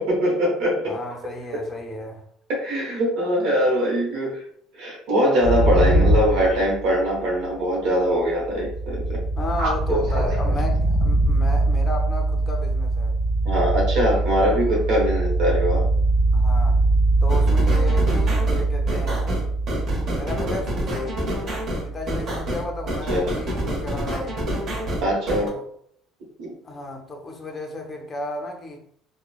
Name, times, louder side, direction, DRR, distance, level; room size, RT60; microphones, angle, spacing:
voice 1, 0.0-0.9 2.5-4.4 4.7-9.2 9.6-10.3 13.4-15.8 23.1-23.2 25.0-25.5 26.4-26.5, equal, 70° right, 1.0 m, -22 dB
voice 2, 0.9-2.2 9.4-13.2 14.4-14.6 16.3-16.9 17.2-19.4 20.1-21.5 21.8-24.4 25.3-25.6 26.6-28.8, left 1 dB, 25° left, 0.5 m, -34 dB
sound 1, 5.4-7.2 8.2-25.1, right 2 dB, 5° right, 0.9 m, -23 dB
sound 2, 17.3-25.5, equal, 50° right, 0.9 m, -28 dB
2.9 x 2.1 x 2.3 m
cardioid pair, 130°, 0 cm